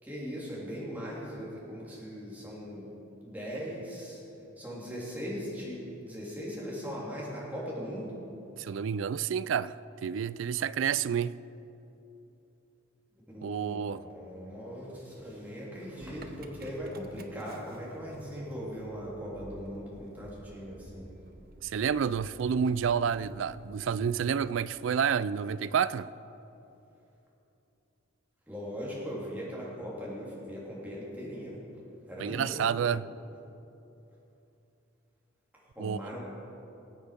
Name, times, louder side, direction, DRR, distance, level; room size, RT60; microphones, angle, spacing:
voice 1, 0.0-2.8 3.2-4.2 4.6-8.2 13.3-21.1 28.5-31.6 32.1-32.6 35.7-36.2, equal, 10° right, 3.2 m, -39 dB
voice 2, 8.6-9.8 10.0-11.3 13.4-14.0 21.6-26.1 32.2-33.1 35.8-36.1, right 7 dB, 70° right, 0.3 m, -29 dB
Motor vehicle (road) / Engine starting, 16.0-24.3, right 2 dB, 50° right, 0.8 m, -50 dB
20.0 x 8.2 x 5.1 m
head